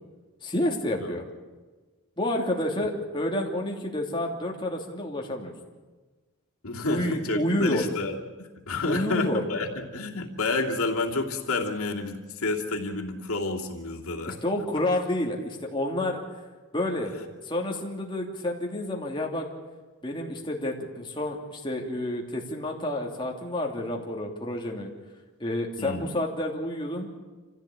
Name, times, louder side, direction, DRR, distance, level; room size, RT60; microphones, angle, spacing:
voice 1, 0.4-1.2 2.2-5.5 6.9-7.8 8.8-9.4 14.4-16.2 16.7-17.1 17.4-19.5 20.0-24.9 25.4-27.1, left 1 dB, 20° left, 0 dB, 2.9 m, -29 dB
voice 2, 6.6-14.4 25.8-26.1, left 3 dB, 90° left, 0 dB, 2.7 m, -30 dB
26.5 x 15.5 x 8.7 m, 1.3 s
head